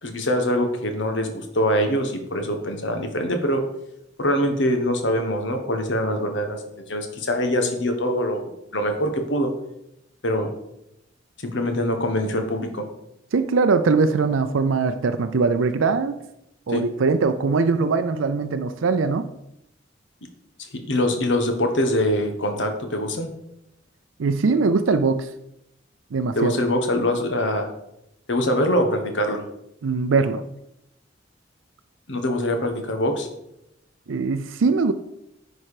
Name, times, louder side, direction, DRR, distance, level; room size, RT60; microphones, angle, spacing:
voice 1, 0.0-3.6 4.2-6.6 6.9-8.4 8.7-9.5 10.2-10.5 11.4-12.9 16.7-16.9 20.7-23.3 26.3-27.7 28.3-29.4 32.1-33.3, left 1 dB, 65° left, 5 dB, 1.3 m, -23 dB
voice 2, 13.3-16.2 16.7-19.3 24.2-25.3 26.1-26.5 29.8-30.4 34.1-34.9, right 4 dB, 85° right, 9 dB, 0.5 m, -21 dB
9.9 x 4.6 x 4.9 m, 0.83 s
head